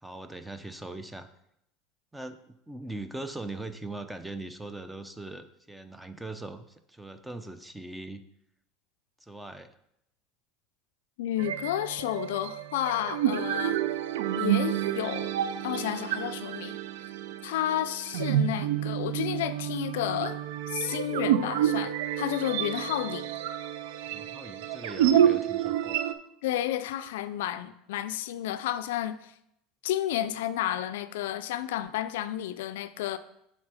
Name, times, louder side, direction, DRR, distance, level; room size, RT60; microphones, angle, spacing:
voice 1, 0.0-1.3 2.1-8.2 9.2-9.7 24.1-26.0, right 2 dB, 5° right, 0.6 m, -41 dB
voice 2, 11.2-13.8 14.4-15.3 15.6-16.8 17.4-20.4 20.7-23.3 26.4-29.3 29.8-33.2, left 12 dB, 80° left, 0.4 m, -31 dB
sound 1, 11.4-26.1, right 10 dB, 85° right, 0.4 m, -29 dB
7.2 x 4.3 x 4.9 m
supercardioid pair, 100°, 0 cm